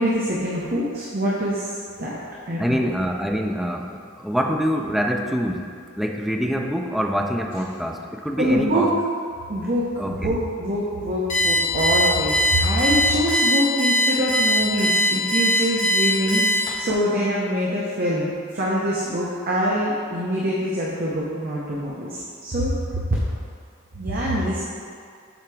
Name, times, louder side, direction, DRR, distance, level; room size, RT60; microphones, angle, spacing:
voice 1, 0.0-2.2 2.5-2.8 8.4-8.9 9.5-23.2 23.9-24.6, equal, 45° right, -6 dB, 0.8 m, -24 dB
voice 2, 2.6-8.9 10.0-10.3, equal, ahead, 2 dB, 0.3 m, -25 dB
Alarm, 11.3-16.9, equal, 40° left, 1.5 m, -20 dB
7.9 x 2.9 x 4.7 m, 2.3 s
head